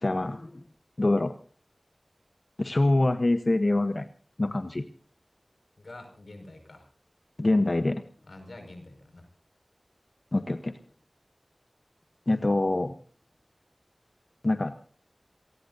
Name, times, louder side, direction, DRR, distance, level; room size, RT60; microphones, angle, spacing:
voice 1, 0.0-0.6 1.0-1.3 2.6-4.1 4.4-4.9 7.4-8.0 10.3-10.7 12.3-12.9 14.4-14.8, left 2 dB, 55° left, 9 dB, 0.9 m, -25 dB
voice 2, 5.8-6.9 8.2-9.3, left 2 dB, 90° left, 5 dB, 5.5 m, -46 dB
28.5 x 18.5 x 2.7 m, 0.41 s
wide cardioid pair, 55°, 0 cm